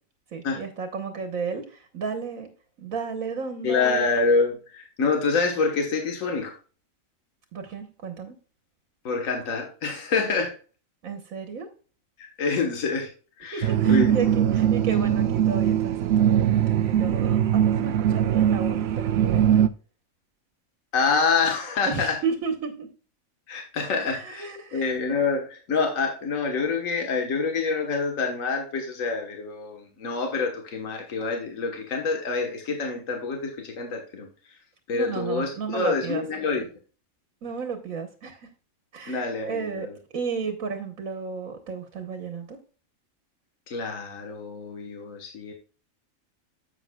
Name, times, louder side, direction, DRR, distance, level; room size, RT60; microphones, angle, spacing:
voice 1, 0.3-2.5 2.8-4.1 7.5-8.3 11.0-11.7 13.5-19.7 21.9-22.9 23.9-24.9 34.9-36.2 37.4-38.5 38.9-39.9 40.1-42.6, right 5 dB, 85° right, 6 dB, 1.6 m, -33 dB
voice 2, 3.6-6.5 9.0-10.6 12.2-13.1 13.4-14.2 14.4-14.5 20.9-22.2 23.5-24.5 24.7-34.6 34.9-36.7 39.1-39.9 43.7-45.5, left 4 dB, 75° left, 3 dB, 1.7 m, -26 dB
sound 1, 13.6-19.7, right 10 dB, 60° right, 0.8 m, -21 dB
10.5 x 8.0 x 2.3 m, 0.37 s
omnidirectional pair, 1.4 m